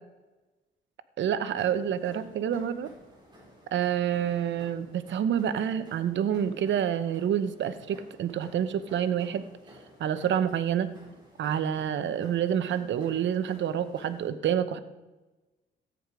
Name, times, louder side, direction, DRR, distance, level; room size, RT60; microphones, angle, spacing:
voice 1, 1.2-2.9 3.7-9.4 10.0-10.9 11.4-14.8, right 9 dB, 70° right, 12 dB, 0.9 m, -28 dB
sound 1, 1.6-14.3, equal, 20° right, 5.0 m, -53 dB
13.5 x 9.3 x 4.9 m, 1.1 s
cardioid pair, 90°, 20 cm